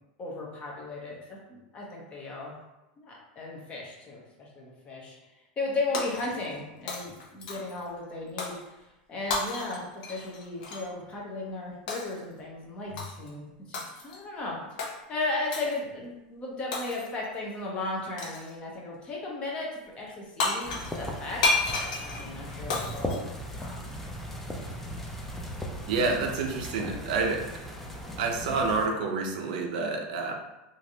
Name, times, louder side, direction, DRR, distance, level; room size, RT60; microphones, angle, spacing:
voice 1, 0.2-2.5 3.0-5.2 5.6-14.6 15.1-23.2 23.5-23.9, left 2 dB, 25° left, -3 dB, 0.7 m, -36 dB
Shatter, 5.9-6.6 6.9-7.8 8.4-8.6 9.3-10.9 11.9-12.2 13.0-13.3 13.7-14.2 14.8-15.0 15.5-15.8 16.7-17.3 18.2-18.5 20.1-20.2 20.4-24.0, left 3 dB, 65° left, 0.7 m, -32 dB
sound 1, 20.6-28.9, equal, 5° left, 0.4 m, -38 dB
voice 2, 25.9-27.8 28.2-30.3, right 4 dB, 75° right, 2 dB, 0.5 m, -28 dB
3.0 x 2.5 x 2.7 m, 1.0 s
supercardioid pair, 145°, 4 cm